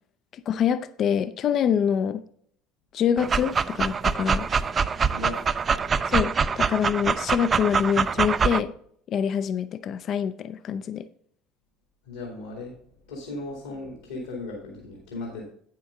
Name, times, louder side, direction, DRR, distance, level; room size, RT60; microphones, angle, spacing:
voice 1, 0.5-2.2 2.9-4.5 6.1-8.7 9.1-11.1, left 8 dB, 45° left, 0.4 m, -25 dB
Dog, 3.2-8.6, right 5 dB, 30° right, 0.4 m, -24 dB
voice 2, 12.0-12.8 13.1-15.4, left 2 dB, 75° left, 2.0 m, -36 dB
8.8 x 7.4 x 3.6 m
figure-of-eight pair, 65°, 0 cm